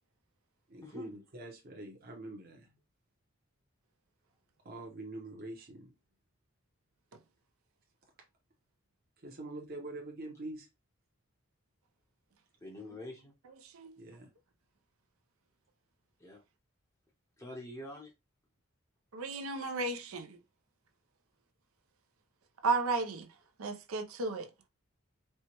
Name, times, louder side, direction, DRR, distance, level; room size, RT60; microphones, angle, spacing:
voice 1, 0.7-2.8 4.6-5.9 9.2-10.7 14.0-14.3, right 2 dB, 45° right, 0.8 m, -45 dB
voice 2, 12.6-13.3 16.2-16.4 17.4-18.1, left 1 dB, 15° left, 0.6 m, -46 dB
voice 3, 19.1-20.4 22.6-23.3 23.6-24.5, right 3 dB, 90° right, 0.6 m, -33 dB
4.3 x 2.2 x 2.9 m
head